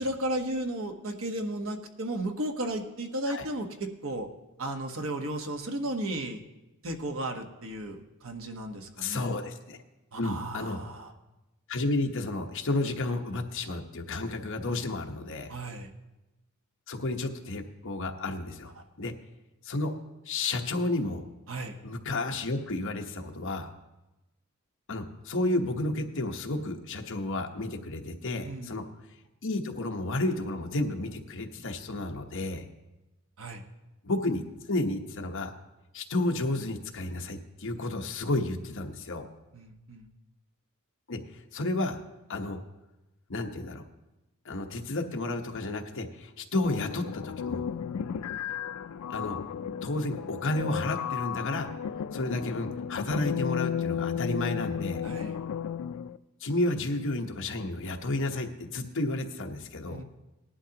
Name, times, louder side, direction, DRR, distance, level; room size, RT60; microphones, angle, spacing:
voice 1, 0.0-4.3 4.6-6.4 6.8-9.3 10.1-11.1 15.5-15.9 18.8-18.9 21.5-21.8 28.4-28.8 33.4-33.6 39.5-40.1 55.0-55.4 59.9-60.0, right 1 dB, 65° right, 4 dB, 1.1 m, -34 dB
voice 2, 9.0-9.8 10.1-10.8 11.7-15.5 16.9-18.7 19.0-19.1 19.6-19.9 20.3-21.3 21.8-23.7 24.9-28.8 29.4-32.7 34.0-34.4 34.7-35.5 35.9-39.3 41.1-42.0 42.3-42.6 43.3-43.8 44.4-47.6 49.1-49.4 49.8-51.7 52.1-55.0 56.4-60.0, left 2 dB, 60° left, 4 dB, 1.0 m, -31 dB
sound 1, 46.6-56.2, left 8 dB, 75° left, 0.4 m, -34 dB
18.5 x 11.5 x 2.9 m, 1.0 s
head